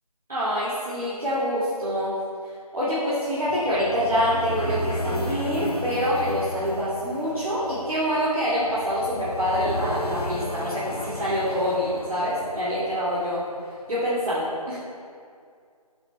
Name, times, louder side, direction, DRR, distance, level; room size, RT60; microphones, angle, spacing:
voice 1, 0.3-2.1 2.7-13.4 13.9-14.8, equal, ahead, -22 dB, 0.5 m, -26 dB
sound 1, 3.5-13.6, left 1 dB, 75° left, 0.9 m, -34 dB
11.5 x 4.3 x 4.5 m, 2.2 s
figure-of-eight pair, 165°, 20 cm